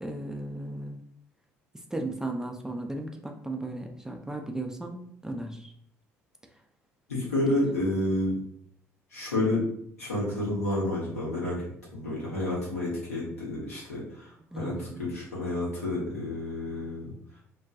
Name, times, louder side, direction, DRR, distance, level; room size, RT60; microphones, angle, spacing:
voice 1, 0.0-1.0 1.9-5.7 14.5-15.0, right 2 dB, 5° right, 3 dB, 0.4 m, -35 dB
voice 2, 7.1-8.4 9.1-9.6 10.0-11.6 11.9-17.1, left 1 dB, 80° left, -7 dB, 0.9 m, -30 dB
2.3 x 2.2 x 2.6 m, 0.68 s
figure-of-eight pair, 55°, 8 cm